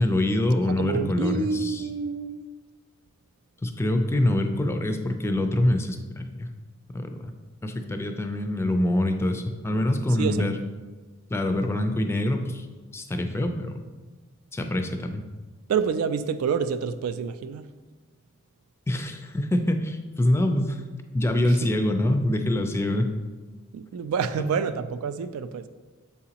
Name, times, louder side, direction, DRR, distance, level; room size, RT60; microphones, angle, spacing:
voice 1, 0.0-1.9 3.6-6.5 6.9-7.3 7.6-10.6 11.3-12.7 12.9-13.8 14.5-15.2 18.9-20.8 21.1-23.1, left 1 dB, 10° left, 6 dB, 0.4 m, -25 dB
voice 2, 0.8-2.5 10.2-10.4 15.7-17.6 21.4-21.7 23.7-25.6, right 6 dB, 85° right, 11 dB, 0.3 m, -28 dB
6.9 x 4.8 x 2.9 m, 1.3 s
head